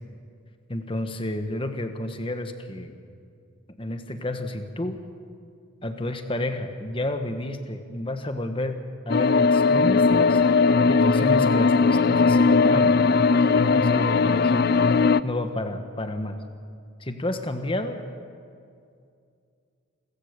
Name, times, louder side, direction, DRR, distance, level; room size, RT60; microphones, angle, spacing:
voice 1, 0.7-3.0 3.8-5.0 5.8-10.4 10.8-13.0 13.3-14.7 15.2-16.4 17.0-18.0, left 1 dB, 25° left, 7 dB, 1.4 m, -30 dB
sound 1, 9.1-15.2, left 4 dB, 50° left, 0.4 m, -19 dB
28.5 x 15.5 x 6.8 m, 2.4 s
head